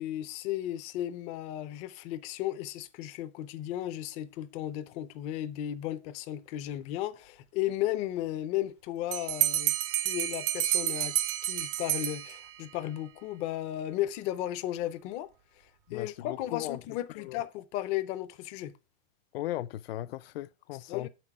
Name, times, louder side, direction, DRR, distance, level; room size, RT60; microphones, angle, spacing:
voice 1, 0.0-9.7 10.0-11.2 11.4-15.3 15.9-18.7 20.9-21.1, left 13 dB, 20° left, 0.4 m, -34 dB
Bell, 9.1-12.7, right 14 dB, 35° right, 0.5 m, -30 dB
voice 2, 15.9-16.8 17.1-17.4 19.3-21.1, left 14 dB, 70° left, 0.5 m, -37 dB
7.2 x 6.0 x 4.6 m
supercardioid pair, 160°, 31 cm